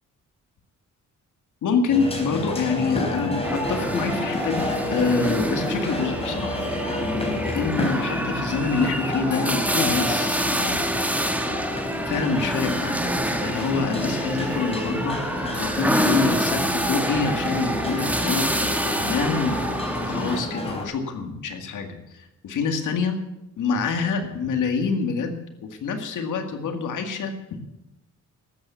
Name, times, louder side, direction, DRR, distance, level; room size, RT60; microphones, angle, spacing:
voice 1, 1.6-6.6 7.0-10.8 12.1-13.0 13.4-15.2 15.6-19.6 20.0-23.2 23.6-27.3, left 5 dB, 80° left, 5 dB, 2.1 m, -26 dB
sound 1, 1.9-20.9, left 1 dB, 20° left, 3.7 m, -30 dB
sound 2, 3.4-20.4, right 1 dB, 5° right, 1.3 m, -27 dB
13.0 x 8.8 x 8.2 m, 0.92 s
cardioid pair, 100°, 31 cm